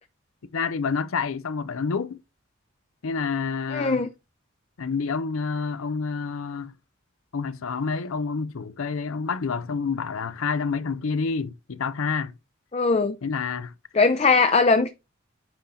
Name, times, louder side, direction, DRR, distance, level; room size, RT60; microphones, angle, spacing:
voice 1, 0.5-2.2 3.0-4.1 4.8-6.7 7.3-12.4 13.2-13.7, left 5 dB, 85° left, 0.6 m, -28 dB
voice 2, 3.7-4.1 12.7-13.2 13.9-14.9, left 4 dB, 30° left, 0.5 m, -20 dB
9.1 x 3.8 x 4.2 m
head